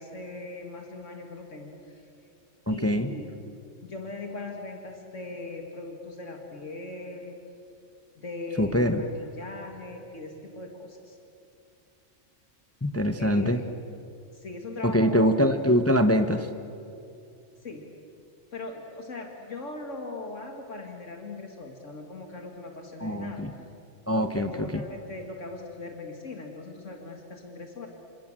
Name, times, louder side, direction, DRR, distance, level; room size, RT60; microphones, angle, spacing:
voice 1, 0.0-2.0 2.7-3.4 3.8-7.4 8.1-11.2 13.2-13.7 14.3-15.4 17.6-17.9 18.5-23.5 24.1-27.9, left 2 dB, 75° left, 2 dB, 2.6 m, -39 dB
voice 2, 2.7-3.1 8.6-9.0 12.8-13.6 14.8-16.5 23.0-23.5 24.1-24.8, equal, 15° left, 8 dB, 0.9 m, -24 dB
28.5 x 26.0 x 7.6 m, 2.5 s
omnidirectional pair, 1.3 m